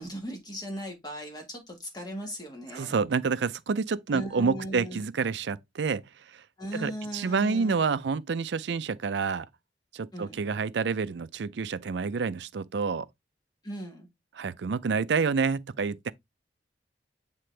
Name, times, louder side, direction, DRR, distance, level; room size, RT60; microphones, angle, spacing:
voice 1, 0.0-3.0 4.1-5.0 6.6-7.8 10.1-10.4 13.6-14.1, equal, 25° left, 1.6 m, -38 dB
voice 2, 2.7-6.4 6.7-9.5 9.9-13.1 14.3-16.1, right 5 dB, 75° right, 0.5 m, -28 dB
7.7 x 3.7 x 3.2 m
head